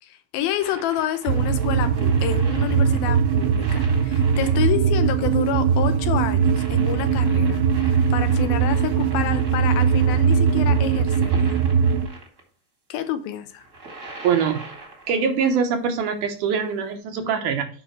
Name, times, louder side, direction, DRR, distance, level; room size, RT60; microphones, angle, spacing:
voice 1, 0.0-11.6 12.9-13.6, left 10 dB, 85° left, 2.6 m, -28 dB
sound 1, 0.6-12.4 13.5-15.3 16.9-17.0, right 2 dB, 30° right, 1.5 m, -42 dB
sound 2, 1.3-12.1, right 6 dB, 90° right, 2.5 m, -20 dB
voice 2, 14.2-14.6 15.1-17.7, right 6 dB, 70° right, 2.3 m, -23 dB
9.3 x 5.6 x 3.1 m
omnidirectional pair, 4.2 m